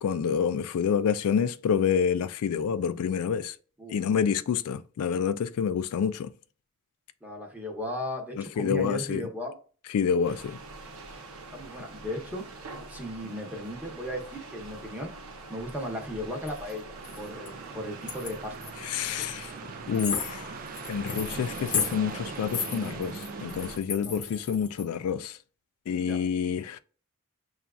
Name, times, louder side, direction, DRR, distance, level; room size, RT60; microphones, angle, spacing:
voice 1, 0.0-3.6 3.9-6.3 8.4-9.2 9.9-10.6 18.8-19.5 19.9-20.6 20.9-25.4 25.9-26.8, left 7 dB, 80° left, 0.3 m, -28 dB
voice 2, 7.2-9.6 11.5-12.4 12.9-15.1 15.5-18.6 19.3-19.5 24.0-24.1 26.0-26.2, equal, 10° right, 0.8 m, -36 dB
sound 1, 10.2-23.8, right 3 dB, 70° right, 0.8 m, -45 dB
sound 2, 16.5-16.7 17.0-17.5 18.1-18.7 19.2-19.3 19.6-19.7 19.9-24.9, left 6 dB, 55° left, 0.9 m, -34 dB
sound 3, 16.9-23.8, right 5 dB, 40° right, 0.3 m, -41 dB
6.9 x 2.4 x 2.4 m
head